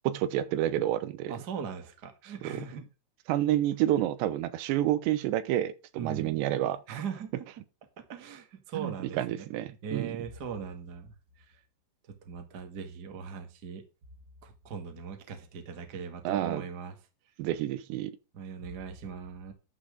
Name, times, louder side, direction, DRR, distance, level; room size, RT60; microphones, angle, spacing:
voice 1, 0.0-1.3 2.4-2.8 3.3-6.8 8.8-10.1 16.2-16.6 17.4-18.1, right 13 dB, 75° right, 2.9 m, -29 dB
voice 2, 1.3-2.8 5.9-6.4 6.9-7.4 8.0-11.6 12.2-13.8 14.4-17.0 18.3-19.5, right 6 dB, 55° right, 1.0 m, -40 dB
11.5 x 6.4 x 5.2 m
omnidirectional pair, 5.3 m